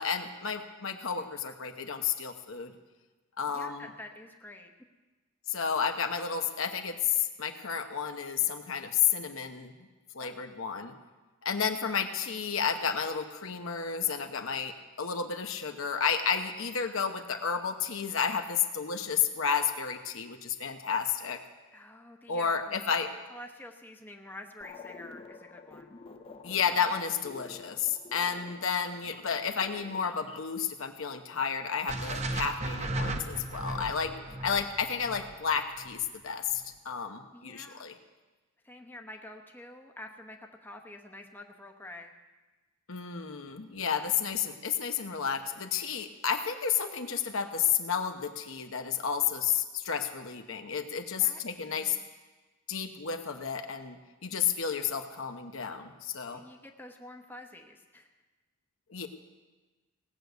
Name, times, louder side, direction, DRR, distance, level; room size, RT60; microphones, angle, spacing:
voice 1, 0.0-2.7 3.4-3.9 5.5-9.7 10.1-11.0 11.4-21.4 22.3-23.1 26.4-37.9 42.9-52.0 52.7-56.4 58.9-59.1, left 7 dB, 70° left, 6 dB, 1.0 m, -31 dB
voice 2, 3.5-4.7 10.2-10.4 21.7-22.8 23.3-26.0 34.2-34.3 37.3-37.9 38.6-42.1 51.2-52.0 56.2-58.1, left 1 dB, 10° left, 2 dB, 0.9 m, -48 dB
sound 1, 24.6-30.5, left 4 dB, 25° left, 0.6 m, -49 dB
sound 2, 31.9-36.1, right 1 dB, 30° right, 0.9 m, -35 dB
18.0 x 6.6 x 8.1 m, 1.2 s
head